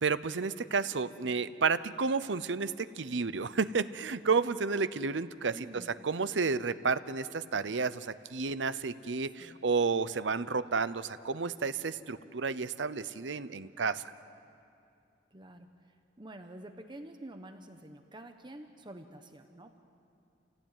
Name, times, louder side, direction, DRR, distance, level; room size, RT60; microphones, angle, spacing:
voice 1, 0.0-5.5 6.0-14.0, right 4 dB, 90° right, 14 dB, 0.8 m, -31 dB
voice 2, 1.0-1.4 5.5-5.9 9.4-9.6 15.3-19.8, right 1 dB, 25° right, 6 dB, 1.1 m, -49 dB
28.0 x 17.0 x 9.2 m, 2.5 s
head